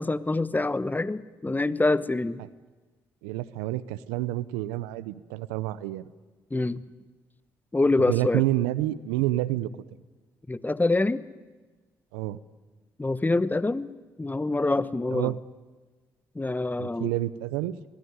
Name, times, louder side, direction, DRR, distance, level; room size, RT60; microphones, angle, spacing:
voice 1, 0.0-2.4 6.5-6.8 7.7-8.4 10.5-11.2 13.0-13.9 14.2-15.3 16.3-17.1, left 2 dB, 20° left, 16 dB, 1.1 m, -25 dB
voice 2, 3.2-6.1 8.0-9.7 12.1-12.4 15.1-15.4 16.8-17.8, right 16 dB, 90° right, 18 dB, 0.7 m, -28 dB
24.0 x 19.0 x 9.6 m, 1.3 s
hypercardioid pair, 50°, 9 cm